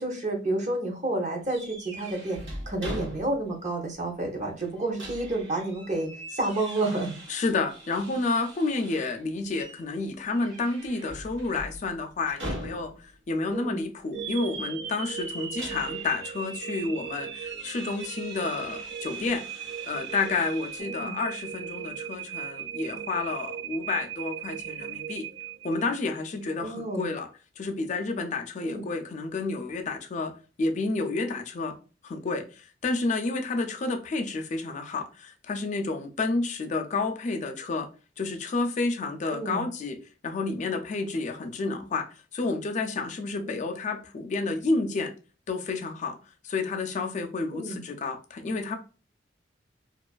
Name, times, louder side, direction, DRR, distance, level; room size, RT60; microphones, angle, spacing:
voice 1, 0.0-7.2 13.5-13.8 20.8-21.1 26.6-27.1 28.6-28.8 39.3-39.6 43.5-43.6 47.5-47.8, right 2 dB, 40° right, 0.7 m, -30 dB
sound 1, 1.5-3.6 3.9-4.0 4.6-9.2 9.5-9.8 10.2-13.2 15.2-20.8, right 1 dB, 85° right, 0.9 m, -42 dB
voice 2, 7.3-25.3 25.6-27.3 27.6-30.3 30.6-31.8 32.0-37.9 38.2-45.1 45.5-46.2 46.4-48.8, left 3 dB, 40° left, 0.4 m, -30 dB
sound 2, 14.1-26.2, right 8 dB, 65° right, 0.3 m, -37 dB
2.4 x 2.4 x 2.2 m
head